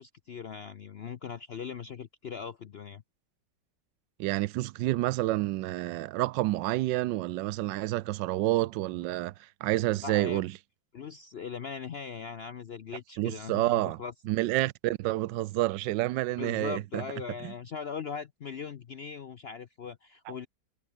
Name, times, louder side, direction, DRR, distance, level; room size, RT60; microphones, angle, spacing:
voice 1, 0.0-3.0 10.0-10.4 10.9-14.1 16.4-20.5, left 6 dB, 60° left, 0.6 m, -40 dB
voice 2, 4.2-10.5 13.2-17.0 17.4-17.5 20.3-20.4, right 17 dB, 90° right, 1.3 m, -29 dB
omnidirectional pair, 1.9 m